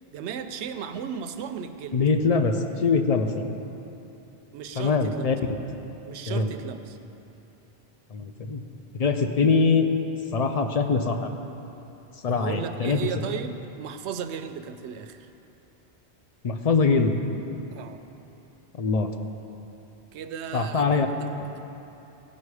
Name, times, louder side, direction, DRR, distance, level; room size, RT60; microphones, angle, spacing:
voice 1, 0.1-2.0 4.5-5.3 6.0-7.0 12.3-15.3 17.7-18.1 20.1-21.1, right 7 dB, 90° right, 9 dB, 0.9 m, -35 dB
voice 2, 1.9-3.4 4.8-5.3 6.3-6.5 8.1-8.6 8.9-9.9 10.3-11.3 12.2-13.0 16.4-17.2 18.8-19.1 20.5-21.1, left 4 dB, 45° left, 6 dB, 0.5 m, -23 dB
15.5 x 5.6 x 4.8 m, 2.9 s
omnidirectional pair, 1.1 m